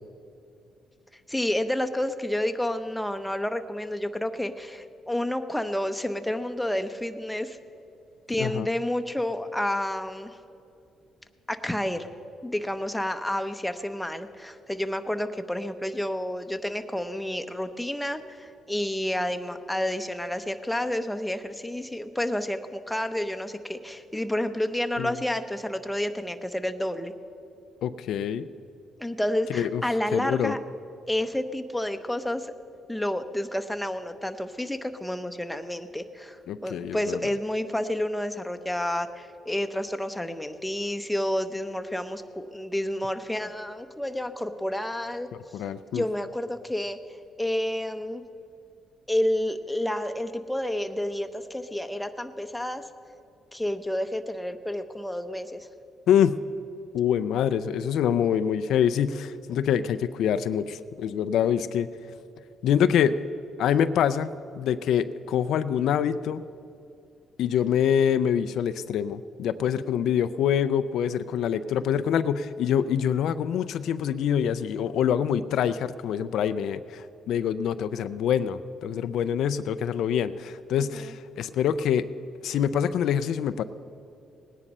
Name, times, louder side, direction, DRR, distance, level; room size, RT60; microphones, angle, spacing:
voice 1, 1.1-7.6 8.3-10.4 11.5-12.1 12.4-27.1 29.0-30.6 31.1-32.5 32.9-45.3 45.9-47.0 47.4-48.2 49.1-52.9 53.5-55.7 80.8-81.1, left 1 dB, 5° left, 7 dB, 0.8 m, -30 dB
voice 2, 27.8-28.5 29.5-29.8 30.1-30.5 36.5-37.2 45.5-46.0 56.1-56.4 56.9-61.9 62.6-63.2 63.6-64.3 64.6-66.4 67.4-82.0 82.4-83.6, left 9 dB, 80° left, 12 dB, 0.4 m, -25 dB
18.0 x 9.9 x 5.4 m, 2.6 s
cardioid pair, 90°, 0 cm